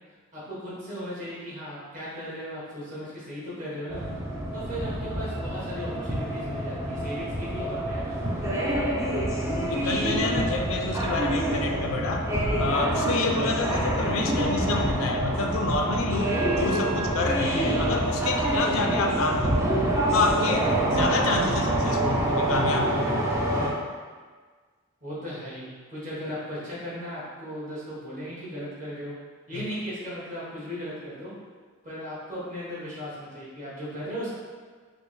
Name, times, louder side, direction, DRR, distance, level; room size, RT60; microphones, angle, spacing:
voice 1, 0.3-4.0 4.5-8.9 25.0-29.1 29.5-31.3 31.8-34.3, equal, 40° right, -9 dB, 1.4 m, -37 dB
sound 1, 3.9-23.7, right 1 dB, 15° right, 0.4 m, -26 dB
voice 2, 9.7-12.3 12.6-19.6 20.1-23.1 29.5-29.7, left 3 dB, 70° left, 4 dB, 0.4 m, -28 dB
5.1 x 2.0 x 3.1 m, 1.5 s
head